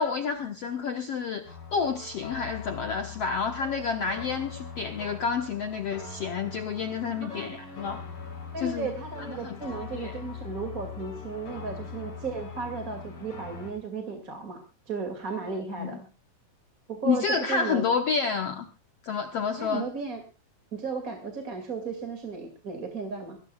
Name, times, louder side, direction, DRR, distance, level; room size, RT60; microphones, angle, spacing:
voice 1, 0.0-8.0 8.6-8.9 9.3-9.6 9.9-10.2 15.8-16.0 17.0-18.7 19.0-19.9, left 5 dB, 70° left, 5 dB, 1.5 m, -29 dB
sound 1, 1.5-13.7, left 5 dB, 55° left, 5.7 m, -41 dB
voice 2, 8.5-14.6 14.9-16.1 16.9-17.8 19.6-20.2 20.7-23.4, right 4 dB, 25° right, 5 dB, 2.2 m, -34 dB
23.5 x 16.5 x 2.4 m, 0.30 s
omnidirectional pair, 4.4 m